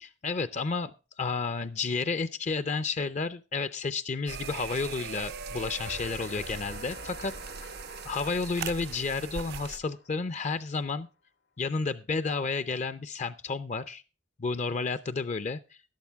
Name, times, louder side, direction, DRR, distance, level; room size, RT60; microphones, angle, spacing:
voice 1, 0.0-7.3 7.6-7.7 8.1-11.1 11.6-14.0 14.4-15.6, left 4 dB, 40° left, 13 dB, 0.4 m, -31 dB
sound 1, 4.3-9.8, right 6 dB, 55° right, 0.5 m, -40 dB
sound 2, 5.9-10.8, left 3 dB, 70° left, 1.5 m, -48 dB
12.0 x 11.5 x 3.4 m, 0.31 s
head